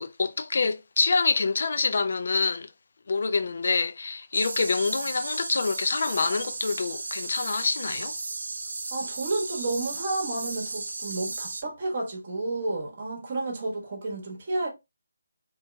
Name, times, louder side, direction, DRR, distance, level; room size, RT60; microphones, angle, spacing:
voice 1, 0.0-2.7 3.1-8.1, left 4 dB, 60° left, 0.3 m, -26 dB
sound 1, 4.3-11.6, right 3 dB, 65° right, 0.5 m, -35 dB
voice 2, 8.9-14.7, right 2 dB, 40° right, 1.1 m, -31 dB
2.8 x 2.8 x 2.2 m
figure-of-eight pair, 160°, 0 cm